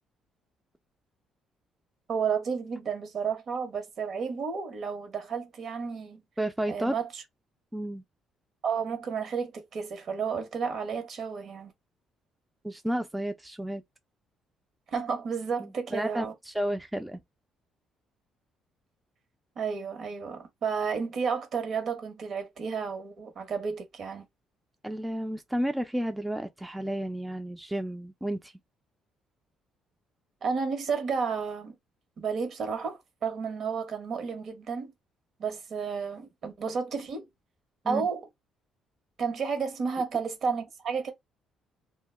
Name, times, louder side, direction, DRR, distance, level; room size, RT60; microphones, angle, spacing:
voice 1, 2.1-6.2 6.7-7.2 8.6-11.7 14.9-16.3 19.6-24.2 30.4-31.8 32.2-34.9 35.4-37.3 37.8-38.2 39.2-41.1, right 5 dB, 60° right, 0.9 m, -32 dB
voice 2, 6.4-7.0 7.7-8.0 12.6-13.8 15.6-17.2 24.8-28.5 37.8-38.0, right 1 dB, 10° right, 0.3 m, -32 dB
2.1 x 2.1 x 3.2 m
cardioid pair, 85°, 0 cm